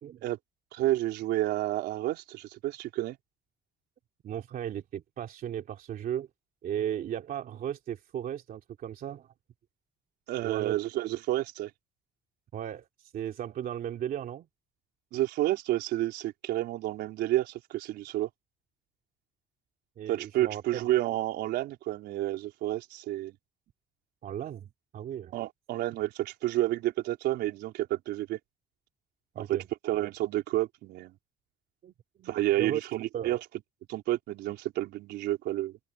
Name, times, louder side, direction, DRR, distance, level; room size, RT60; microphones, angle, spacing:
voice 1, 0.7-3.2 10.3-11.7 15.1-18.3 20.1-23.4 25.3-28.4 29.4-29.6 29.8-31.1 32.3-33.4 33.9-35.8, right 15 dB, 80° right, 4.2 m, -30 dB
voice 2, 4.2-6.3 6.6-9.3 10.4-10.8 12.5-14.5 20.0-20.8 24.2-25.4 29.3-29.7 31.8-32.3 32.6-32.8 33.1-33.4, right 10 dB, 60° right, 2.7 m, -36 dB
open air
cardioid pair, 110°, 17 cm